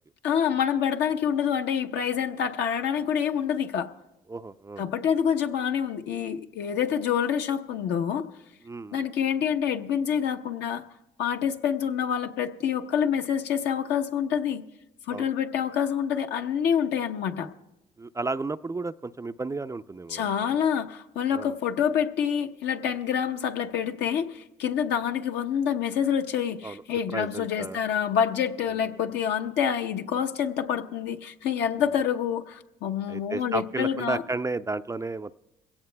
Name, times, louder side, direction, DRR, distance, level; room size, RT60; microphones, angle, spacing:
voice 1, 0.2-3.9 4.8-8.3 8.9-10.8 11.2-14.6 15.1-17.5 20.1-34.2, left 8 dB, 75° left, 5 dB, 0.9 m, -27 dB
voice 2, 4.3-4.8 8.6-9.0 15.1-15.3 18.0-20.3 21.3-21.6 26.6-27.8 33.1-35.3, right 3 dB, 15° right, 12 dB, 0.4 m, -33 dB
22.5 x 17.0 x 2.2 m, 0.96 s
supercardioid pair, 70°, 18 cm